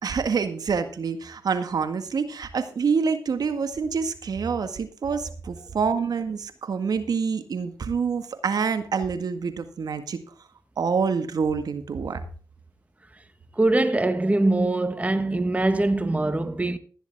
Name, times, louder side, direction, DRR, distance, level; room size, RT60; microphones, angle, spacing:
voice 1, 0.0-10.2 10.8-12.2, right 5 dB, 65° right, 1.8 m, -26 dB
voice 2, 13.5-16.8, right 2 dB, 20° right, 1.5 m, -22 dB
16.0 x 10.5 x 3.6 m
supercardioid pair, 45°, 7 cm